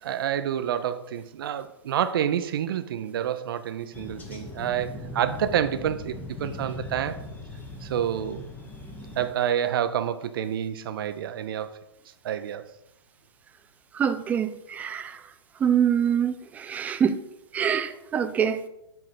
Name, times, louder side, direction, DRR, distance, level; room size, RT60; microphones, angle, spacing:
voice 1, 0.0-7.2 7.8-8.4 9.2-11.7 12.2-12.7, right 9 dB, 55° right, 0.6 m, -28 dB
sound 1, 3.9-9.3, left 2 dB, 10° left, 0.9 m, -39 dB
voice 2, 13.9-15.2 15.6-17.2 17.5-18.6, right 8 dB, 10° right, 0.3 m, -25 dB
7.7 x 3.7 x 4.2 m
figure-of-eight pair, 120°, 14 cm